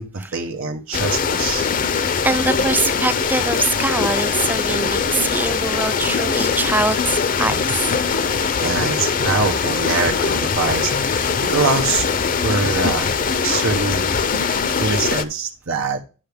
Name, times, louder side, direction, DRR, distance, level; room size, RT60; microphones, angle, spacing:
voice 1, 0.0-1.7 8.6-14.1 14.8-16.0, right 4 dB, 90° right, 1.0 m, -24 dB
sound 1, 0.9-15.2, left 5 dB, 45° left, 0.6 m, -21 dB
voice 2, 2.2-8.0, right 2 dB, 10° right, 0.4 m, -23 dB
sound 2, 7.5-14.3, left 3 dB, 80° left, 0.7 m, -33 dB
9.9 x 5.9 x 3.5 m
head